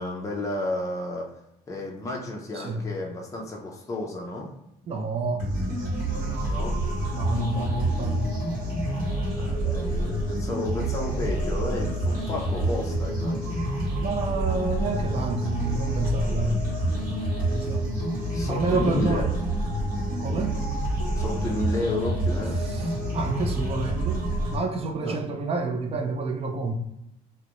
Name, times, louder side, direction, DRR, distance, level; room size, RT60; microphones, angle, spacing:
voice 1, 0.0-1.3 1.7-4.5 6.4-6.8 9.4-13.6 18.3-19.2 21.1-22.6 25.0-25.2, left 1 dB, 20° left, -2 dB, 0.5 m, -32 dB
voice 2, 4.9-5.5 6.3-6.5 7.1-8.3 14.0-17.1 17.5-17.9 18.5-19.3 20.2-20.6 22.7-24.2 24.5-26.7, right 2 dB, 35° right, 4 dB, 0.5 m, -29 dB
sound 1, 5.4-24.6, right 1 dB, 55° right, 1.0 m, -27 dB
2.4 x 2.1 x 2.9 m, 0.83 s
cardioid pair, 110°, 17 cm